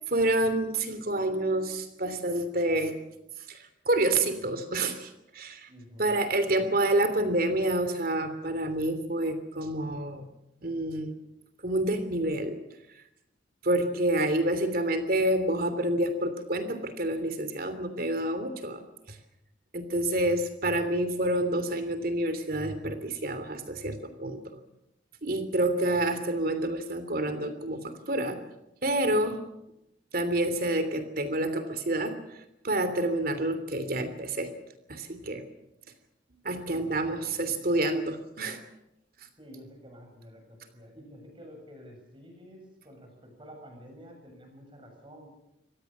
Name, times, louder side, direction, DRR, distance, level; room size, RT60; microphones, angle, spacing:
voice 1, 0.1-2.9 3.5-5.7 6.0-10.3 10.6-11.1 11.6-12.6 13.6-18.8 19.7-24.4 25.2-28.4 28.8-29.4 30.1-32.1 32.6-34.5 34.9-35.4 36.4-38.6, right 1 dB, 50° right, 10 dB, 3.1 m, -28 dB
voice 2, 5.7-6.2 6.5-6.6 36.7-37.5 38.4-38.5 39.4-45.3, equal, 25° right, 3 dB, 7.7 m, -50 dB
25.5 x 18.0 x 7.4 m, 0.88 s
head